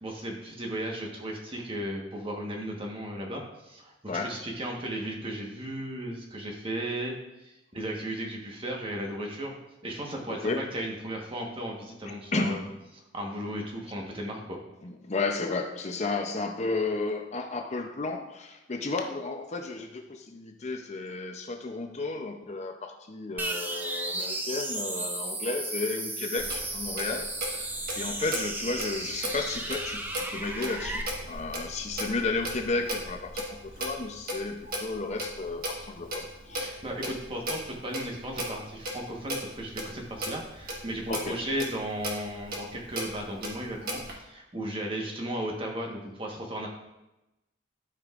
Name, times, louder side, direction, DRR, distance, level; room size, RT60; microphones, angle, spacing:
voice 1, 0.0-7.1 7.4-9.5 9.8-12.6 13.1-14.6 36.6-46.7, right 1 dB, 30° right, 0 dB, 1.3 m, -35 dB
voice 2, 10.3-10.7 12.3-12.7 14.8-27.7 28.0-36.7 41.1-41.4, left 3 dB, 35° left, 4 dB, 0.6 m, -33 dB
sound 1, 23.4-31.0, right 2 dB, 10° right, 0.5 m, -34 dB
Clock, 26.4-44.1, equal, 50° right, 1.4 m, -37 dB
12.5 x 5.1 x 2.5 m, 0.96 s
head